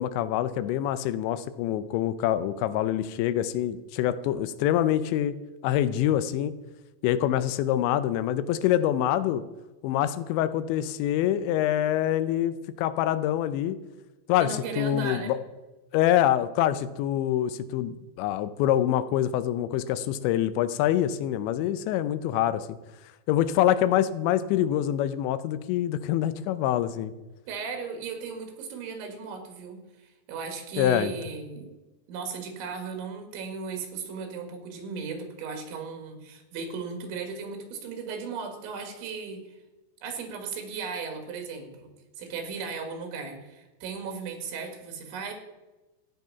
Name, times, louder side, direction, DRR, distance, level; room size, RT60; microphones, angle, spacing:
voice 1, 0.0-5.3 5.6-6.5 7.0-9.4 9.8-13.8 14.3-15.4 15.9-22.8 23.3-27.1 30.8-31.1, left 11 dB, 85° left, 13 dB, 2.9 m, -25 dB
voice 2, 14.4-15.4 27.5-31.7 32.1-39.4 40.0-41.9 42.2-45.3, right 5 dB, 85° right, 5 dB, 4.4 m, -36 dB
15.0 x 9.2 x 5.7 m, 1.1 s
omnidirectional pair, 5.2 m